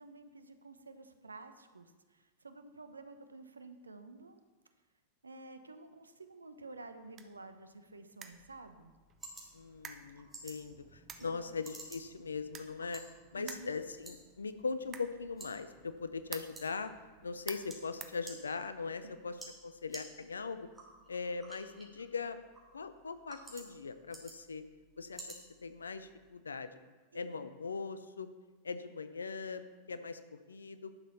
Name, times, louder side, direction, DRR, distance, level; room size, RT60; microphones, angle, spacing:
voice 1, 0.0-4.4 5.2-8.9 11.2-11.4 13.3-13.7 19.0-19.1 27.1-27.3, right 3 dB, 80° right, 9 dB, 0.8 m, -51 dB
sound 1, 6.6-18.9, right 7 dB, 30° right, 0.9 m, -53 dB
sound 2, 8.3-26.3, right 2 dB, 10° right, 2.9 m, -55 dB
voice 2, 9.5-13.0 13.3-16.9 17.2-20.7 21.1-22.4 22.7-24.6 25.0-25.4 25.6-26.7 27.1-28.3 28.6-29.6 29.9-30.2 30.5-30.9, left 4 dB, 75° left, 11 dB, 0.6 m, -40 dB
11.0 x 6.3 x 5.6 m, 1.2 s
figure-of-eight pair, 90°, 0 cm